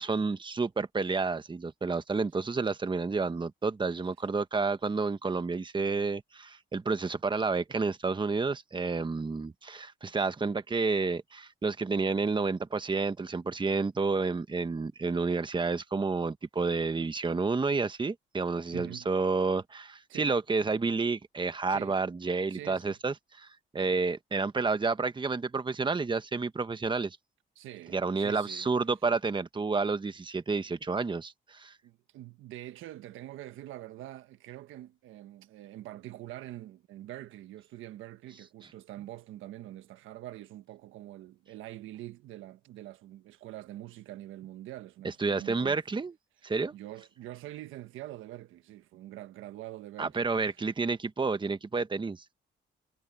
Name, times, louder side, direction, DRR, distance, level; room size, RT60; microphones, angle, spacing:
voice 1, 0.0-23.5 23.7-27.2 27.9-31.7 45.2-46.1 46.4-46.7 50.0-52.2, right 4 dB, 25° right, 1.3 m, -30 dB
voice 2, 18.7-19.1 20.1-20.3 21.7-22.0 22.5-23.0 27.5-28.7 31.8-45.8 46.4-50.6, right 14 dB, 90° right, 1.4 m, -45 dB
cardioid pair, 90°, 20 cm